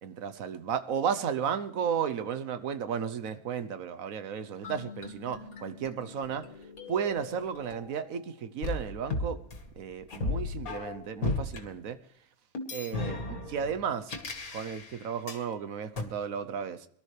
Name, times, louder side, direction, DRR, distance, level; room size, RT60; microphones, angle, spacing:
voice 1, 0.0-6.5 6.9-9.4 9.8-12.0 12.7-14.1 14.5-16.9, right 7 dB, 75° right, 1.2 m, -33 dB
sound 1, 4.6-8.2 8.6-11.6 12.5-15.4 16.0-16.1, left 3 dB, 75° left, 2.1 m, -36 dB
23.0 x 12.0 x 3.3 m
omnidirectional pair, 1.5 m